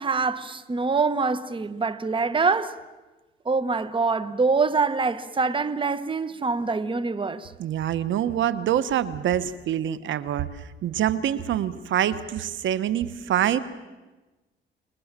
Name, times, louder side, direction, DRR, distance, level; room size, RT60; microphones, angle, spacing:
voice 1, 0.0-2.8 3.4-7.5, right 4 dB, 25° right, 1.2 m, -25 dB
voice 2, 7.6-13.6, right 10 dB, 75° right, 1.2 m, -25 dB
29.5 x 20.5 x 7.5 m
cardioid pair, 90°, 20 cm